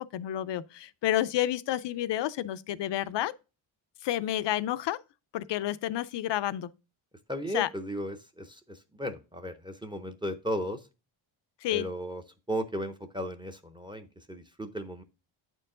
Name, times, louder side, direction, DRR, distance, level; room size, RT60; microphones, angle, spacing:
voice 1, 0.0-3.3 4.0-5.0 5.3-6.7 7.5-7.7 11.6-11.9, left 13 dB, 60° left, 0.6 m, -30 dB
voice 2, 7.3-10.8 11.7-12.2 12.5-15.0, equal, 10° right, 0.6 m, -35 dB
8.9 x 4.6 x 3.7 m
cardioid pair, 150°, 49 cm